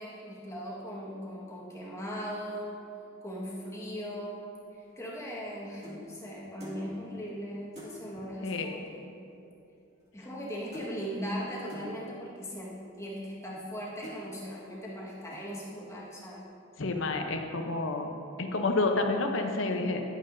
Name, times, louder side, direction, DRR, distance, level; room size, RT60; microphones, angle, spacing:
voice 1, 0.0-2.8 3.2-4.4 4.7-9.1 10.1-16.5, equal, 15° left, -5 dB, 1.6 m, -39 dB
sound 1, 4.9-6.1 6.6-6.9 7.3-7.4 7.7-8.0 8.9-9.0 9.2-9.5 9.8-10.5 10.7-11.0 11.7-11.9 12.6-12.7 13.3-13.7 14.0-14.3 14.8-15.0 15.3-15.7, left 1 dB, 35° right, 2.0 m, -47 dB
voice 2, 8.4-8.7 16.8-18.1 18.4-20.0, left 3 dB, 70° left, 4 dB, 0.8 m, -29 dB
11.0 x 9.1 x 2.7 m, 2.6 s
head